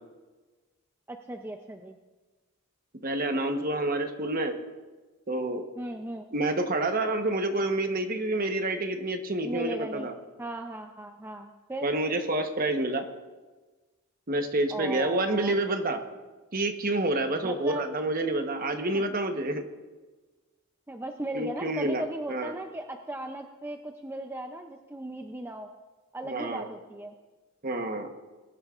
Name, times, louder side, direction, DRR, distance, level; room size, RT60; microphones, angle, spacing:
voice 1, 1.1-2.0 5.8-6.3 9.4-10.1 10.4-11.9 14.7-15.6 17.4-18.0 18.9-19.0 20.9-25.7 26.1-27.1, right 1 dB, 10° right, 4 dB, 0.5 m, -37 dB
voice 2, 3.0-4.6 5.3-5.6 6.3-10.1 11.8-13.0 14.3-16.0 16.5-19.6 21.3-22.0 22.3-22.5 26.2-26.7 27.6-28.1, right 2 dB, 40° right, 5 dB, 1.0 m, -28 dB
22.0 x 11.5 x 2.5 m, 1.3 s
head